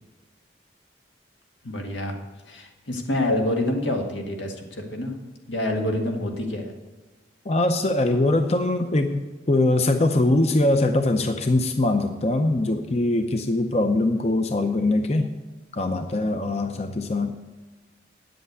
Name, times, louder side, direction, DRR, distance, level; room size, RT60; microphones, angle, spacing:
voice 1, 1.6-2.2 2.5-5.1 5.5-6.7, left 1 dB, 90° left, 2 dB, 1.9 m, -27 dB
voice 2, 7.5-15.3 15.7-17.5, left 2 dB, 35° left, 7 dB, 0.6 m, -22 dB
9.7 x 7.9 x 8.1 m, 1.2 s
head